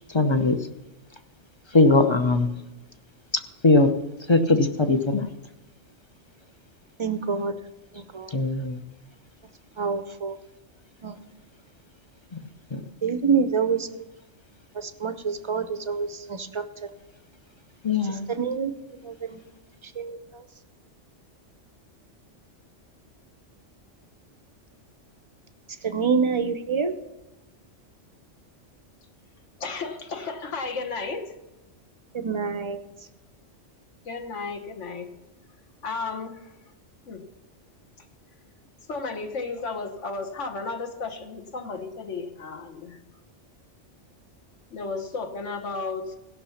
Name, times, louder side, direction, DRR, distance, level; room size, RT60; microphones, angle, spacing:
voice 1, 0.1-0.6 1.7-2.5 3.6-3.9 4.3-5.3 8.3-8.8 12.3-12.4 12.7-12.8 17.8-18.3, left 3 dB, 30° left, 7 dB, 0.5 m, -20 dB
voice 2, 7.0-7.5 8.0-8.3 9.8-10.4 11.0-11.2 13.0-13.9 14.8-16.6 18.3-18.7 19.0-19.4 20.0-20.2 25.8-26.9 32.1-32.8, right 5 dB, 35° right, 10 dB, 0.5 m, -26 dB
voice 3, 29.6-31.4 34.0-35.1 35.8-36.4 37.1-37.2 38.9-43.0 44.7-46.1, left 4 dB, 75° left, 6 dB, 1.5 m, -33 dB
16.5 x 5.9 x 5.7 m, 1.0 s
omnidirectional pair, 1.2 m